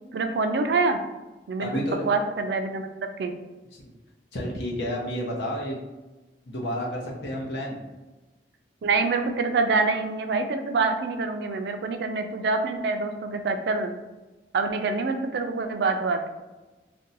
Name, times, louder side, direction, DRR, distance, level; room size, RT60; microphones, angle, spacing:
voice 1, 0.1-1.0 1.5-2.9 3.2-3.3 8.8-13.9 14.5-16.4, right 3 dB, 70° right, 6 dB, 0.3 m, -26 dB
voice 2, 1.6-2.1 3.7-3.8 4.3-5.8 6.4-7.8, equal, 75° left, -2 dB, 0.8 m, -30 dB
2.6 x 2.2 x 3.9 m, 1.2 s
head